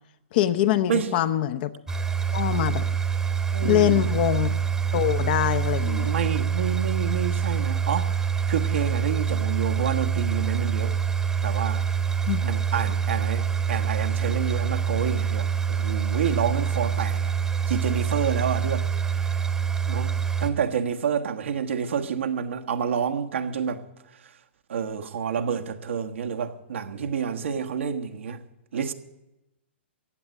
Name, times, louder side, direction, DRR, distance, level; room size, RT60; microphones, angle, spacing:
voice 1, 0.3-1.7 2.3-2.8 3.6-4.5 4.9-6.1 12.3-12.4, left 12 dB, 45° left, 0.9 m, -23 dB
voice 2, 0.9-1.3 3.5-4.1 5.9-11.0 11.4-11.8 12.4-17.3 17.7-19.2 19.9-20.1 20.4-23.8 24.2-24.3 24.7-28.4 28.7-28.9, right 7 dB, 75° right, 1.4 m, -29 dB
sound 1, 1.9-20.5, right 7 dB, 10° right, 1.1 m, -26 dB
15.0 x 8.8 x 9.4 m
hypercardioid pair, 135°, 7 cm